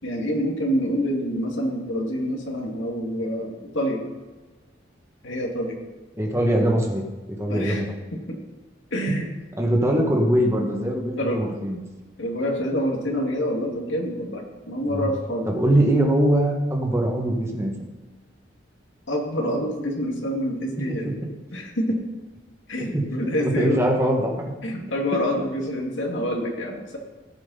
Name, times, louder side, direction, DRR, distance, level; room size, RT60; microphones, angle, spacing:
voice 1, 0.0-4.1 5.2-5.8 7.5-7.8 8.1-8.4 8.9-9.3 11.2-11.4 12.2-15.5 19.1-21.1 21.5-22.0 22.7-23.8 24.6-27.0, equal, 85° left, 0 dB, 2.4 m, -27 dB
voice 2, 6.2-7.0 7.4-7.9 9.6-11.8 14.9-15.1 15.5-17.7 20.9-21.2 22.8-23.0 23.4-24.5, right 1 dB, 15° right, 0 dB, 2.0 m, -22 dB
17.5 x 7.6 x 4.2 m, 1.2 s
head